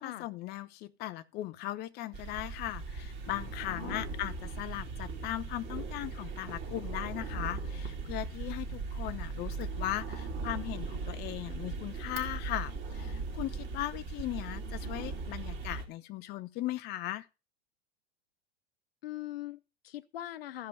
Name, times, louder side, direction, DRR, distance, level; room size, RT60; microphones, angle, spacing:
voice 1, 0.0-17.3, left 15 dB, 30° left, 0.6 m, -38 dB
sound 1, 2.1-15.9, right 4 dB, 35° right, 3.1 m, -39 dB
voice 2, 3.7-4.0 19.0-20.7, left 13 dB, 65° left, 0.9 m, -41 dB
14.0 x 5.2 x 5.5 m
hypercardioid pair, 95°, 31 cm